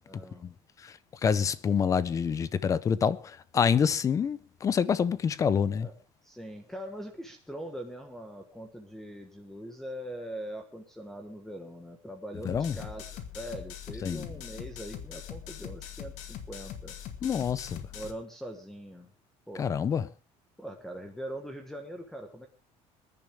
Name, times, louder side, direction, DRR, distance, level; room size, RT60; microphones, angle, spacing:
voice 1, 0.0-0.5 5.8-5.9 6.2-17.0 17.9-19.1 19.5-19.8 20.6-22.5, equal, 5° left, 1.4 m, -42 dB
voice 2, 1.2-5.9 12.4-12.7 14.0-14.2 17.2-17.8 19.6-20.1, left 7 dB, 25° left, 0.7 m, -27 dB
sound 1, 12.5-18.1, left 9 dB, 70° left, 2.1 m, -42 dB
25.5 x 10.5 x 3.6 m
cardioid pair, 165°, 13 cm